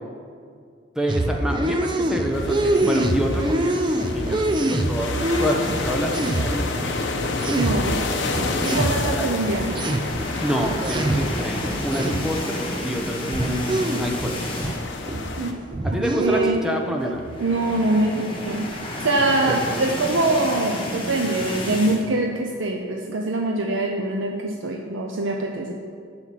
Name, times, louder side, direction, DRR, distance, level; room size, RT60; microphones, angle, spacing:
voice 1, 1.0-3.9 4.1-5.1 5.4-6.9 9.1-9.3 10.4-14.4 15.8-17.2 19.5-19.8, equal, 5° right, 1 dB, 0.8 m, -27 dB
sound 1, 1.1-6.8 7.1-11.4 11.6-12.4 12.9-14.8 15.1-15.4 15.7-17.1, right 1 dB, 25° right, 0.4 m, -25 dB
sound 2, 2.3-15.5, left 3 dB, 70° left, 1.0 m, -30 dB
voice 2, 7.5-8.0 8.6-9.8 15.4-15.6 16.2-16.6 17.4-18.7 19.0-25.7, right 2 dB, 80° right, 1 dB, 0.7 m, -24 dB
sound 3, 9.3-15.0 15.4-15.6 15.9-16.0 17.0-22.0, left 1 dB, 25° left, 1.3 m, -32 dB
7.8 x 5.8 x 7.5 m, 2.2 s
head